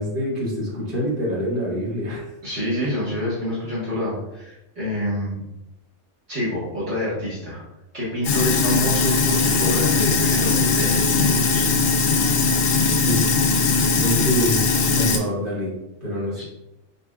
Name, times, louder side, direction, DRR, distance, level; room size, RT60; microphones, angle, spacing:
voice 1, 0.0-2.3 13.0-13.3 13.6-15.7 16.0-16.4, equal, 40° right, -8 dB, 2.0 m, -26 dB
voice 2, 2.4-5.4 6.3-7.6 7.9-11.7 16.3-16.4, left 1 dB, 60° right, -9 dB, 1.9 m, -27 dB
Sink (filling or washing), 8.2-15.2, left 4 dB, 80° left, 1.0 m, -19 dB
5.2 x 4.3 x 2.4 m, 0.94 s
omnidirectional pair, 1.3 m